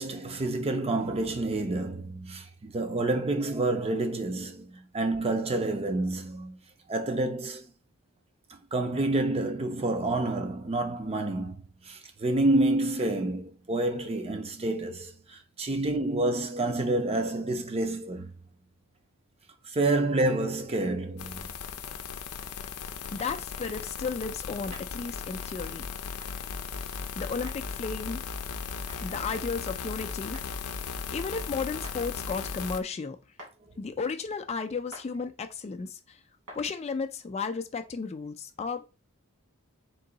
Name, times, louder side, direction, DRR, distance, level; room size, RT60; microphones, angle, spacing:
voice 1, 0.0-6.6 6.9-7.7 8.7-18.3 19.7-21.5, right 2 dB, 25° right, 0.5 m, -28 dB
sound 1, 21.2-32.8, left 6 dB, 90° left, 0.5 m, -37 dB
voice 2, 23.1-25.8 27.2-28.2 29.0-30.4 31.1-33.2 33.8-36.2 36.5-38.8, left 5 dB, 30° left, 0.3 m, -34 dB
sound 2, 23.2-23.3 24.7-24.9 26.2-26.3 27.5-27.6 28.9-29.0 30.3-30.5 31.8-32.0 33.4-33.5 34.9-35.1 36.5-36.6, equal, 70° right, 2.1 m, -46 dB
3.8 x 2.7 x 3.8 m
head